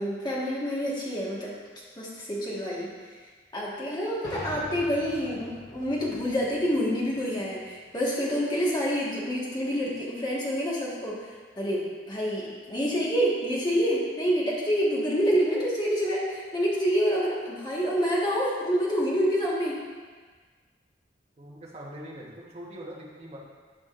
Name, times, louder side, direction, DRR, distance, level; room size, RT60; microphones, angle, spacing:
voice 1, 0.0-1.5 2.0-2.9 3.5-11.2 11.6-19.7, equal, 25° left, -6 dB, 1.6 m, -27 dB
sound 1, 4.2-7.9, left 1 dB, 80° left, 1.2 m, -44 dB
voice 2, 21.4-23.4, right 1 dB, 35° right, -4 dB, 1.3 m, -42 dB
11.5 x 5.1 x 2.6 m, 1.5 s
head